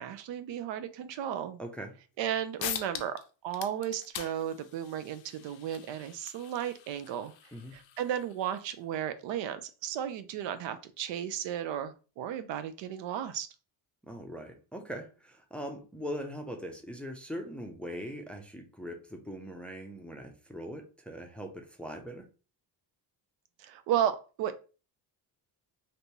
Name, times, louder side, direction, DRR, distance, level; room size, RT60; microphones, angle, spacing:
voice 1, 0.0-1.6 2.2-7.3 7.7-13.5 23.6-24.5, right 10 dB, 70° right, 0.6 m, -34 dB
voice 2, 1.6-1.9 7.5-7.8 14.0-22.3, equal, 5° left, 0.5 m, -41 dB
sound 1, 2.2-2.3 2.6-3.2 3.5-8.7, left 11 dB, 80° left, 0.6 m, -43 dB
3.3 x 2.6 x 2.8 m
cardioid pair, 110°, 45 cm